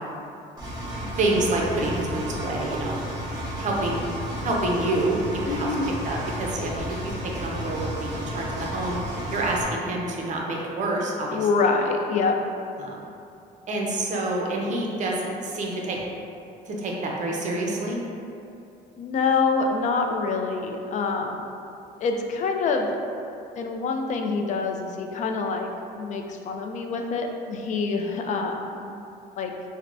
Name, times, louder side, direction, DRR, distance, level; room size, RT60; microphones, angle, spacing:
Engine, 0.6-9.6, equal, 25° right, 1.0 m, -32 dB
voice 1, 1.0-3.0 3.6-4.0 4.4-5.2 5.5-9.0 9.3-11.7 12.8-13.1 13.7-16.0 16.7-18.0, right 2 dB, 45° right, -2 dB, 0.6 m, -28 dB
voice 2, 5.5-5.9 11.3-12.3 19.0-21.4 22.0-23.0 23.6-25.7 26.0-28.9 29.4-29.5, left 4 dB, 45° left, 3 dB, 0.4 m, -26 dB
4.5 x 2.1 x 2.5 m, 2.7 s
cardioid pair, 110°, 17 cm